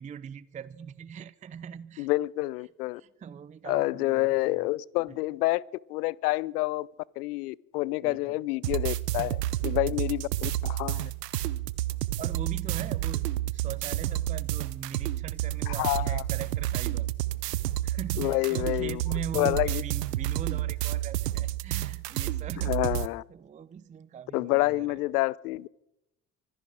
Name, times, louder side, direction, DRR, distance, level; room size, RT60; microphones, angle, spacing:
voice 1, 0.0-2.1 3.0-4.7 5.1-5.2 8.0-8.4 9.6-9.8 12.2-17.1 17.5-23.0 23.3-25.1, right 7 dB, 15° right, 0.5 m, -41 dB
voice 2, 2.0-3.0 3.7-5.6 5.9-6.9 7.2-11.1 15.7-16.2 18.2-19.0 19.3-19.8 22.6-23.2 24.3-25.7, left 20 dB, 75° left, 0.5 m, -28 dB
sound 1, 8.6-23.1, right 14 dB, 80° right, 0.7 m, -30 dB
24.5 x 11.0 x 4.9 m
figure-of-eight pair, 60°, 47 cm